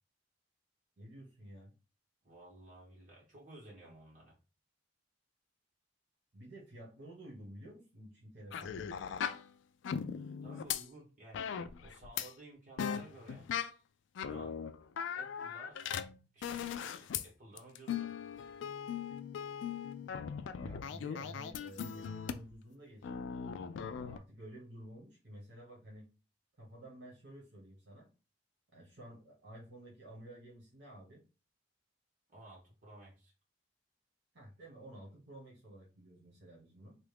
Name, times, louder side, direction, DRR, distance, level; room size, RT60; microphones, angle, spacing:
voice 1, 1.0-1.7 6.3-9.0 20.6-23.2 24.0-26.1 26.6-28.1 28.7-31.2 34.3-37.0, right 1 dB, 65° right, -4 dB, 1.3 m, -52 dB
voice 2, 2.2-4.3 10.4-11.5 11.8-13.5 14.2-14.6 15.1-15.8 16.3-18.2 32.3-33.3, right 1 dB, 45° right, -4 dB, 1.5 m, -55 dB
sound 1, 8.5-9.5 9.8-10.8 11.3-12.3 12.8-13.7 14.1-17.3 17.6-22.5 23.0-24.2, left 7 dB, 75° left, 0.3 m, -39 dB
3.2 x 2.5 x 3.3 m, 0.33 s
head